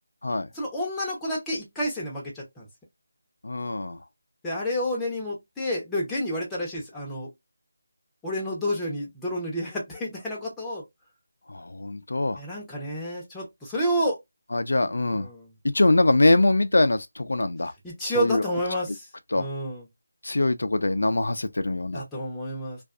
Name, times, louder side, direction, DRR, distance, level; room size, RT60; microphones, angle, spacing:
voice 1, 0.5-2.7 4.4-7.3 8.2-10.8 12.4-14.2 15.1-15.5 17.8-19.0 19.3-19.9 21.9-22.8, equal, 5° left, 0.7 m, -30 dB
voice 2, 3.4-4.0 11.5-12.4 14.5-15.3 15.7-17.7 18.2-18.4 19.3-19.5 20.2-22.0, left 2 dB, 80° left, 0.3 m, -23 dB
2.5 x 2.3 x 2.3 m
figure-of-eight pair, 170°, 0 cm